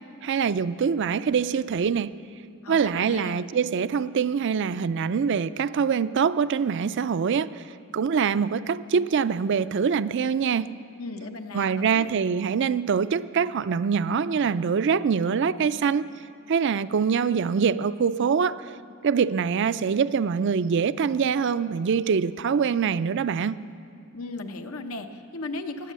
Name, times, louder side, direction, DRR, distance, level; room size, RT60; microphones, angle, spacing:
voice 1, 0.0-2.1 2.7-7.6 7.9-10.8 11.5-16.1 16.5-18.7 19.0-23.6, right 6 dB, 55° right, 0.4 m, -24 dB
voice 2, 2.6-3.5 11.0-12.1 24.1-25.9, left 2 dB, 85° left, 0.9 m, -36 dB
17.5 x 9.2 x 7.5 m
head